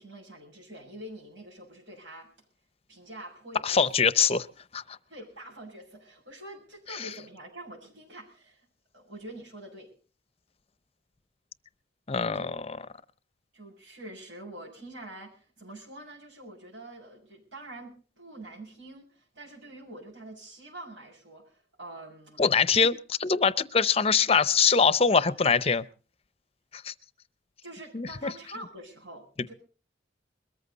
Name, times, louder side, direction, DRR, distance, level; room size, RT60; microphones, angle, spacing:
voice 1, 0.0-2.3 2.9-3.8 5.1-8.7 8.9-9.9 12.3-12.6 13.5-22.4 27.6-29.5, right 1 dB, 85° right, -3 dB, 6.9 m, -45 dB
voice 2, 3.6-4.5 4.7-5.0 6.9-7.1 12.1-12.8 22.4-25.9 26.7-26.9 27.9-28.3, left 5 dB, 30° left, 15 dB, 0.7 m, -23 dB
21.5 x 14.0 x 4.1 m, 0.38 s
head